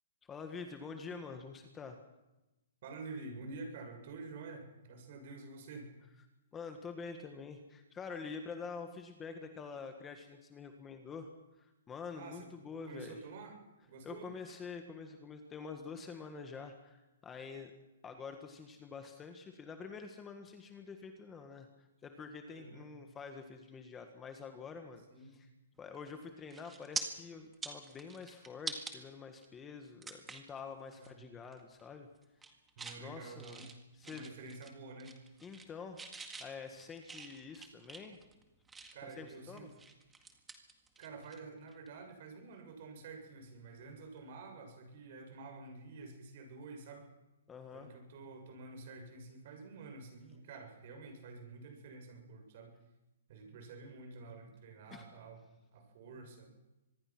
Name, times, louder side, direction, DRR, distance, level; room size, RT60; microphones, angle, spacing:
voice 1, 0.2-2.0 6.5-11.3 11.6-13.2 14.0-17.7 18.0-25.5 25.8-32.1 33.0-33.7 33.9-34.3 35.4-36.1 36.4-38.2 39.0-39.7 47.5-47.9 54.9-55.0, left 5 dB, 10° left, 6 dB, 1.5 m, -47 dB
voice 2, 2.8-5.9 12.1-12.5 12.8-13.6 13.9-14.3 22.5-22.9 25.1-25.3 31.0-31.2 32.8-33.7 34.0-35.1 38.9-39.7 41.0-47.1 47.7-52.7 53.3-55.4 55.7-56.5, right 3 dB, 45° right, 4 dB, 7.1 m, -49 dB
sound 1, 25.9-26.2 26.5-27.0 27.5-29.0 29.4-29.5 30.0-30.5 30.9-31.1 31.4-31.9 32.2-33.0 33.4-34.7 35.0-35.7 36.0-39.1 39.6-41.4 41.7-41.9 43.8-43.9, right 4 dB, 10° right, 1.8 m, -45 dB
25.0 x 21.0 x 6.1 m, 0.99 s
hypercardioid pair, 165°, 0 cm